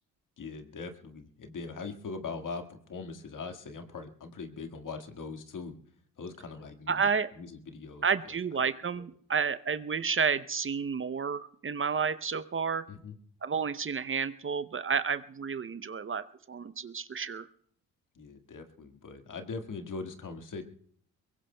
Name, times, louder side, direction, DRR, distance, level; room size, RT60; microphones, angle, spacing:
voice 1, 0.4-5.8 6.2-7.1 7.3-8.1 8.9-9.0 12.9-13.1 18.2-20.6, left 4 dB, 55° left, 6 dB, 1.9 m, -41 dB
voice 2, 6.9-7.3 8.0-12.9 13.4-17.5, right 6 dB, 35° right, 13 dB, 0.7 m, -31 dB
23.0 x 21.0 x 2.3 m, 0.64 s
hypercardioid pair, 50°, 38 cm